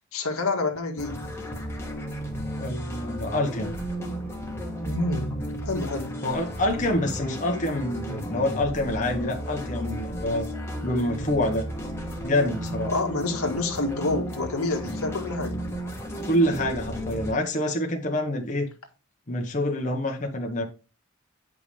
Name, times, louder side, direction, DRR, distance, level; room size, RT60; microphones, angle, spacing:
voice 1, 0.1-1.2 4.8-6.2 12.9-15.6, left 2 dB, 85° left, 1.9 m, -28 dB
sound 1, 1.0-17.3, equal, 10° left, 1.4 m, -34 dB
voice 2, 2.6-3.7 6.2-10.5 10.8-11.7 12.2-12.9 16.2-18.7 19.3-20.6, left 1 dB, 35° left, 1.2 m, -26 dB
9.2 x 5.4 x 3.3 m
head